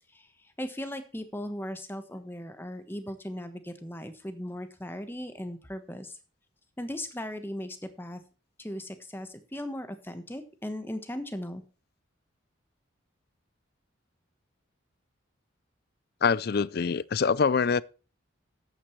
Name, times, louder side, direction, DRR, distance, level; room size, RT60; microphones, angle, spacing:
voice 1, 0.1-6.2 6.8-8.2 8.6-11.6, left 1 dB, 10° left, 1.2 m, -38 dB
voice 2, 16.2-17.8, left 5 dB, 50° left, 0.4 m, -24 dB
13.0 x 9.0 x 3.2 m
head